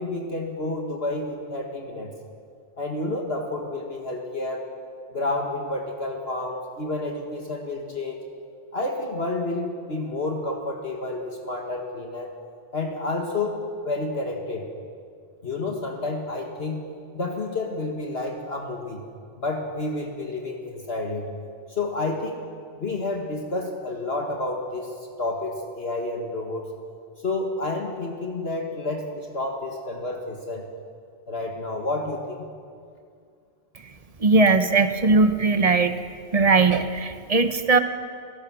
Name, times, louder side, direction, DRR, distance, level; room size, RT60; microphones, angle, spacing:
voice 1, 0.0-2.1 2.8-4.6 5.1-8.2 8.7-12.3 12.7-14.6 15.4-16.9 17.1-19.0 19.4-21.3 21.7-22.4 22.8-24.9 25.2-26.7 27.2-30.7 31.3-32.5, left 2 dB, 60° left, 1 dB, 2.0 m, -30 dB
voice 2, 34.2-35.9 36.3-37.8, right 3 dB, 35° right, 9 dB, 1.1 m, -19 dB
30.0 x 17.0 x 6.3 m, 2.3 s
omnidirectional pair, 1.2 m